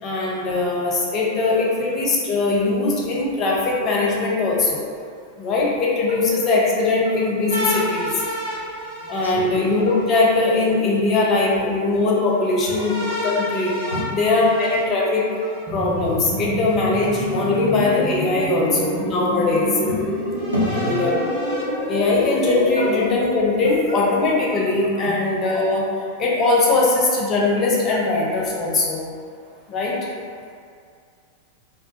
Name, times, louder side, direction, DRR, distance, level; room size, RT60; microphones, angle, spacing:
voice 1, 0.0-4.8 5.4-8.2 9.1-13.0 13.2-13.7 14.1-15.3 15.7-19.8 20.8-21.1 21.9-25.9 26.2-29.0 29.7-29.9, left 3 dB, 30° left, -4 dB, 0.5 m, -20 dB
sound 1, 7.5-10.2 12.6-15.6 16.9-17.9 18.6-18.7 20.3-22.3, left 1 dB, 60° right, 1.0 m, -31 dB
voice 2, 9.0-9.5 12.7-12.8 13.8-14.1 17.3-17.4 18.4-18.5 20.1-20.2 20.5-21.0 25.0-25.1, equal, 80° right, -5 dB, 0.5 m, -27 dB
sound 2, 15.7-23.1, equal, 15° right, 0.8 m, -27 dB
2.3 x 2.3 x 2.6 m, 2.2 s
figure-of-eight pair, 90°, 0 cm